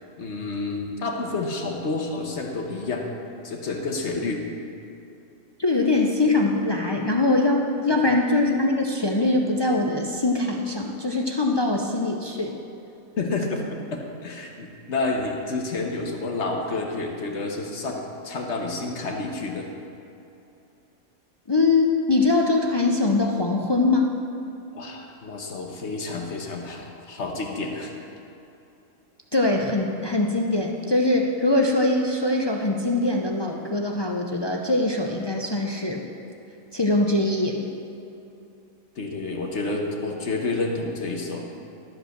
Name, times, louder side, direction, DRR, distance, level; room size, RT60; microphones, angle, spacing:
voice 1, 0.2-3.1 3.4-4.4 13.2-13.6 13.9-19.7 24.7-27.9 38.9-41.4, left 3 dB, 60° left, 1 dB, 1.3 m, -29 dB
voice 2, 5.6-12.5 21.5-24.1 29.3-36.1 36.7-37.6, left 2 dB, 40° left, 1 dB, 0.3 m, -22 dB
12.5 x 5.3 x 6.5 m, 2.8 s
omnidirectional pair, 1.4 m